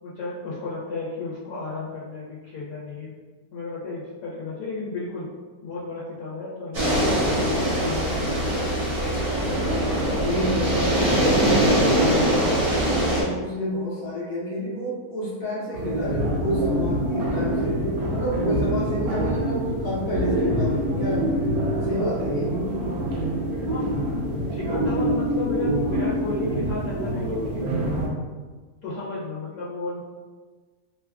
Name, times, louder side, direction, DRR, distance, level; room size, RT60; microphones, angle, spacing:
voice 1, 0.0-3.1 3.5-5.3 5.6-6.9 7.4-8.6 23.7-24.0 24.5-28.0 28.8-30.0, left 3 dB, 85° left, -8 dB, 1.2 m, -33 dB
sound 1, 6.7-13.2, right 1 dB, 35° right, 0.6 m, -22 dB
voice 2, 10.1-11.8 12.1-12.7 13.1-17.8 18.1-21.3 21.8-22.5, equal, 45° left, -8 dB, 0.9 m, -29 dB
sound 2, 15.7-28.1, right 1 dB, 75° right, 1.0 m, -25 dB
3.1 x 2.2 x 2.3 m, 1.4 s
omnidirectional pair, 1.7 m